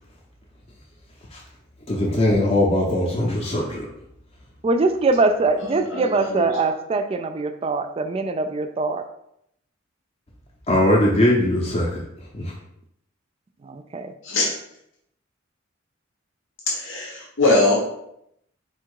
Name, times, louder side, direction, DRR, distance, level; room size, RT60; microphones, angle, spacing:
voice 1, 1.9-3.9 10.7-12.0 12.3-12.5, left 1 dB, 30° left, -2 dB, 0.6 m, -20 dB
voice 2, 4.6-9.0 13.6-14.1, right 3 dB, 30° right, 7 dB, 0.3 m, -22 dB
voice 3, 5.6-6.5 14.2-14.5 16.7-17.8, left 2 dB, 65° left, -2 dB, 0.9 m, -22 dB
4.3 x 2.3 x 4.6 m, 0.77 s
head